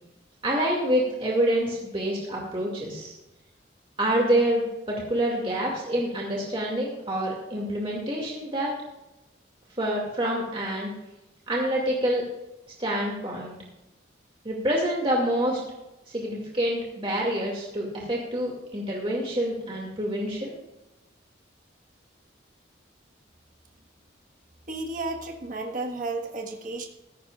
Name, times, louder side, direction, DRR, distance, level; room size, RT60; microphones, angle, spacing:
voice 1, 0.4-3.1 4.0-4.7 5.1-8.7 9.8-10.9 11.5-12.2 12.8-13.5 14.4-15.6 16.1-20.5, right 1 dB, 30° right, -2 dB, 2.3 m, -27 dB
voice 2, 24.7-26.9, right 2 dB, 45° right, 1 dB, 1.5 m, -32 dB
15.5 x 14.5 x 2.5 m, 0.98 s
head